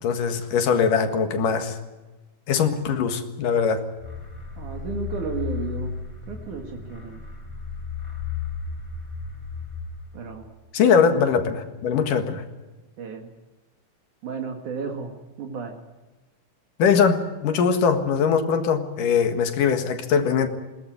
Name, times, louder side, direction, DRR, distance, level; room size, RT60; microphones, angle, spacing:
voice 1, 0.0-1.8 2.5-3.8 10.7-12.4 16.8-20.5, left 6 dB, 75° left, 7 dB, 3.3 m, -21 dB
sound 1, 4.0-10.5, left 6 dB, 25° left, 4.3 m, -34 dB
voice 2, 4.6-6.0 6.3-7.2 10.1-10.5 13.0-13.3 14.2-15.1 15.4-15.8, right 5 dB, 70° right, 3 dB, 3.3 m, -33 dB
21.0 x 18.0 x 9.3 m, 1.2 s
omnidirectional pair, 3.8 m